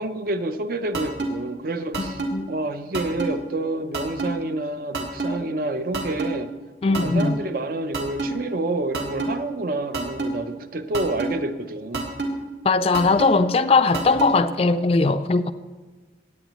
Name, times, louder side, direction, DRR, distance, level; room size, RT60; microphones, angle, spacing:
voice 1, 0.0-2.2 2.5-6.5 6.9-12.1, right 2 dB, 50° right, 0.6 m, -28 dB
sound 1, 0.9-1.3 1.9-2.3 2.9-3.3 3.9-4.3 4.9-5.3 5.9-6.3 6.9-7.3 7.9-8.3 8.9-9.3 9.9-10.3 10.9-11.3 11.9-12.3 12.9-13.3 13.9-14.3, right 3 dB, 70° right, 1.8 m, -26 dB
voice 2, 2.1-2.5 6.8-7.4 12.6-15.5, left 3 dB, 35° left, 0.3 m, -20 dB
17.0 x 8.8 x 3.1 m
head